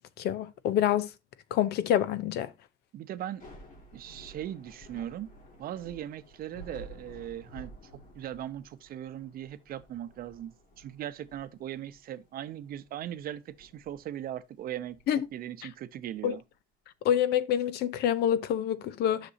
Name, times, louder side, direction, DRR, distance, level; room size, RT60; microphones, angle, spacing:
voice 1, 0.2-1.1 1.5-2.5 15.1-15.3 16.2-16.4 17.0-19.3, left 10 dB, 75° left, 0.6 m, -27 dB
voice 2, 2.9-3.4 3.9-5.3 5.6-7.7 8.1-15.0 15.3-16.4, right 11 dB, 60° right, 0.7 m, -39 dB
Thunder / Rain, 3.2-16.4, right 1 dB, 50° left, 2.1 m, -53 dB
9.8 x 6.0 x 2.6 m
cardioid pair, 110°, 17 cm